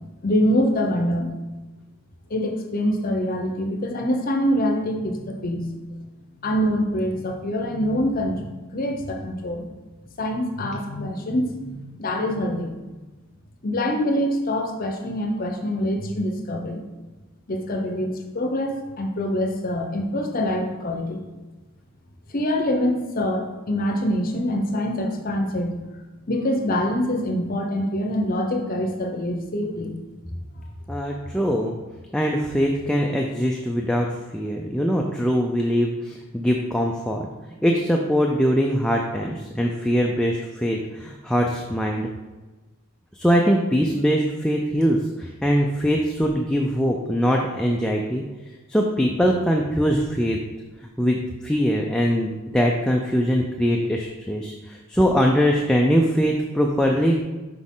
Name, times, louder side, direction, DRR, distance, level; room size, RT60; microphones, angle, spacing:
voice 1, 0.2-1.3 2.3-6.1 6.4-8.4 8.7-9.7 10.2-12.8 13.6-16.8 17.5-21.2 22.3-25.8 26.3-30.0, equal, 40° left, 3 dB, 0.7 m, -25 dB
voice 2, 30.9-31.8 32.1-34.1 34.3-37.3 37.6-42.1 43.2-48.2 48.7-50.4 51.0-57.2, equal, 5° left, 0 dB, 0.4 m, -22 dB
6.2 x 4.8 x 3.7 m, 1.2 s
head